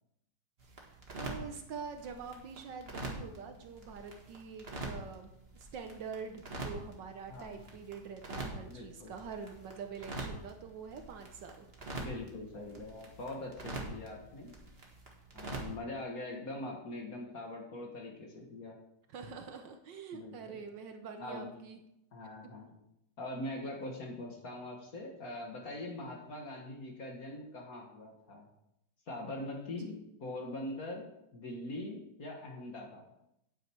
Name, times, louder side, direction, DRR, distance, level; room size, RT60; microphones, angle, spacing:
sound 1, 0.6-15.8, right 2 dB, 30° right, 2.0 m, -45 dB
voice 1, 0.7-11.7 19.1-21.8 29.9-30.0, right 5 dB, 70° right, 6 dB, 1.5 m, -45 dB
voice 2, 7.3-7.7 8.6-9.2 11.9-14.5 15.3-18.8 20.1-20.6 21.2-21.5 22.1-22.7 23.2-28.5 29.1-31.1 31.3-33.1, left 1 dB, 50° left, 0 dB, 2.0 m, -42 dB
9.7 x 9.2 x 4.6 m, 0.83 s
omnidirectional pair, 2.1 m